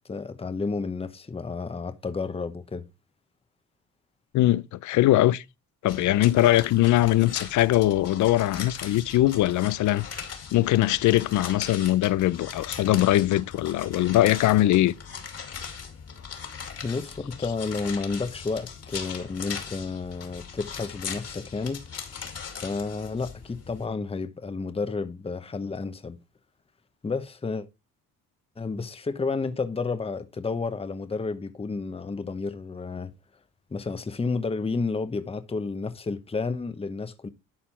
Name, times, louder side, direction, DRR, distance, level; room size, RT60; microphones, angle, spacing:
voice 1, 0.1-2.9 16.3-21.9 22.6-26.2 27.0-27.7 28.6-33.1 33.7-37.3, left 4 dB, 20° left, 0.9 m, -31 dB
voice 2, 4.3-5.4 5.8-10.1 10.5-14.9, left 15 dB, 75° left, 0.5 m, -21 dB
sound 1, 5.9-23.9, left 6 dB, 55° left, 2.4 m, -39 dB
11.5 x 4.3 x 4.3 m
cardioid pair, 90°, 30 cm